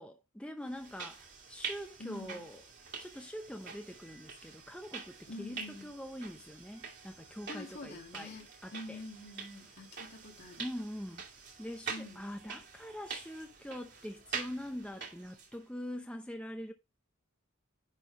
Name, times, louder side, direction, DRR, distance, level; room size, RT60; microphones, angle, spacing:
voice 1, 0.0-2.6 3.0-9.0 10.6-11.2 11.6-16.7, equal, 5° left, 0.6 m, -44 dB
sound 1, 0.7-15.6, right 5 dB, 55° right, 2.4 m, -46 dB
voice 2, 2.0-2.4 5.3-5.9 7.5-8.4 8.7-10.6 11.9-12.2, left 2 dB, 50° left, 2.2 m, -46 dB
10.5 x 3.8 x 5.1 m
head